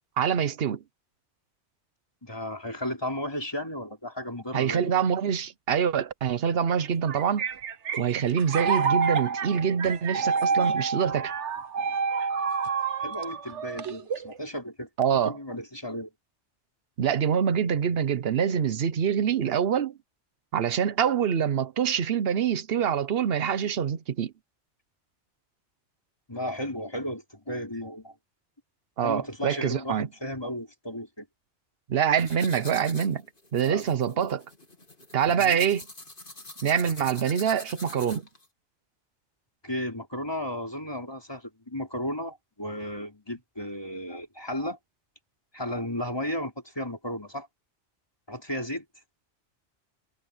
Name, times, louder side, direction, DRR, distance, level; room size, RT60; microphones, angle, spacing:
voice 1, 0.2-0.8 4.5-7.4 8.0-11.3 15.0-15.4 17.0-20.0 20.5-24.3 29.0-30.1 31.9-33.2 33.5-34.4 35.1-35.9 36.6-38.3, right 8 dB, 60° right, 1.0 m, -25 dB
voice 2, 2.2-4.9 13.0-14.9 15.2-16.1 26.3-28.1 29.0-31.3 33.6-34.2 35.3-35.6 39.6-44.8 45.5-47.5 48.3-48.8, left 1 dB, 20° left, 4.6 m, -34 dB
sound 1, 6.8-14.4, right 5 dB, 80° right, 1.3 m, -28 dB
sound 2, 32.2-38.4, left 2 dB, 50° left, 3.6 m, -44 dB
omnidirectional pair, 1.2 m